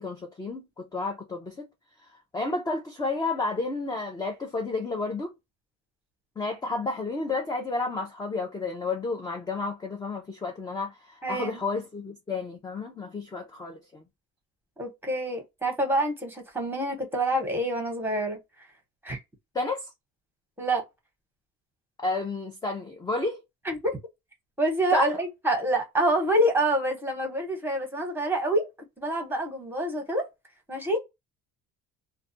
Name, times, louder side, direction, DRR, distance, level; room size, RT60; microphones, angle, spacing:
voice 1, 0.0-1.7 2.3-5.3 6.4-14.0 19.5-19.9 22.0-23.4 24.9-25.1, left 3 dB, 10° left, 0.4 m, -31 dB
voice 2, 11.2-11.6 14.8-18.4 19.0-19.2 20.6-20.8 23.6-24.0 24.6-28.7 29.0-30.3 30.7-31.0, right 1 dB, 5° right, 0.9 m, -27 dB
2.3 x 2.2 x 2.6 m
cardioid pair, 135°, 34 cm